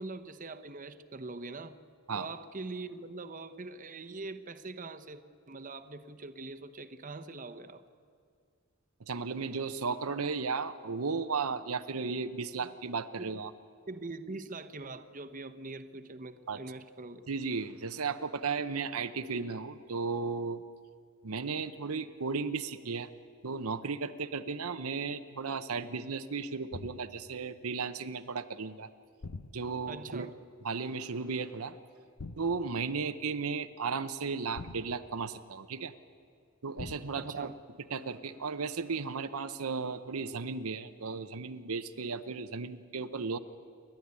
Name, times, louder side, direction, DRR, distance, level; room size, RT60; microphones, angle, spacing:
voice 1, 0.0-1.8 2.1-5.2 5.5-7.8 12.6-12.7 13.2-13.3 13.9-17.2 29.9-30.3 37.2-37.5, right 3 dB, 35° right, 10 dB, 1.0 m, -43 dB
voice 2, 9.1-13.5 16.5-16.6 17.3-20.6 21.2-23.1 23.4-28.9 29.5-30.3 30.6-31.8 32.4-35.9 36.6-37.5 37.9-43.4, right 4 dB, 85° right, 10 dB, 0.8 m, -35 dB
sound 1, 26.7-27.3 29.2-30.0 32.2-32.8 34.6-35.4 36.8-37.3, left 3 dB, 90° left, 0.9 m, -45 dB
29.0 x 12.0 x 9.7 m, 2.2 s
head